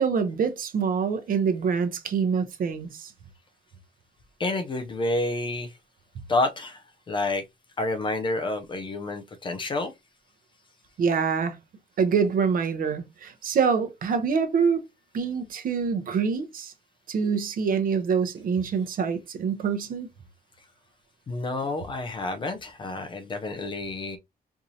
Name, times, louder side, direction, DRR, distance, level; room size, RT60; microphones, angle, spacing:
voice 1, 0.0-3.1 11.0-11.6 12.0-14.8 15.1-16.7 17.1-20.1, right 6 dB, 60° right, 0.7 m, -25 dB
voice 2, 4.4-5.7 6.3-7.4 7.8-9.9 21.3-24.2, left 2 dB, 30° left, 0.4 m, -29 dB
4.5 x 2.6 x 2.7 m
wide cardioid pair, 175°, 16 cm